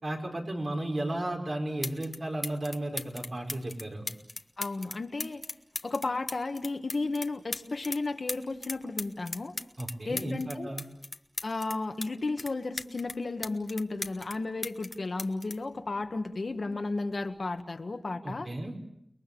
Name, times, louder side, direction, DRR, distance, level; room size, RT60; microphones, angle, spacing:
voice 1, 0.0-4.1 9.8-10.8 18.2-18.7, right 1 dB, 55° right, 1 dB, 5.5 m, -34 dB
sound 1, 1.3-1.4 1.8-2.2 2.4-8.0 8.3-12.1 12.4-14.4 14.6-16.5 17.4-17.6, left 2 dB, 45° left, 1.4 m, -38 dB
voice 2, 4.6-5.4 5.8-9.5 10.1-10.8 11.4-18.5, left 3 dB, 65° left, 6 dB, 1.7 m, -33 dB
29.5 x 21.5 x 7.1 m, 0.77 s
wide cardioid pair, 70°, 0 cm